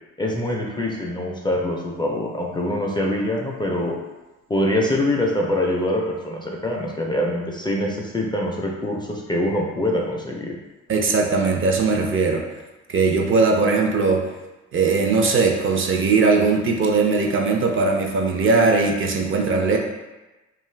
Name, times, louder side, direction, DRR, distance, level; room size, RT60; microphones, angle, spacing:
voice 1, 0.2-4.0 4.5-10.6, left 1 dB, 15° left, -1 dB, 0.4 m, -24 dB
voice 2, 10.9-12.4 12.9-14.2 14.7-19.8, right 4 dB, 45° right, 2 dB, 0.4 m, -19 dB
2.4 x 2.3 x 3.2 m, 1.1 s
cardioid pair, 90°, 30 cm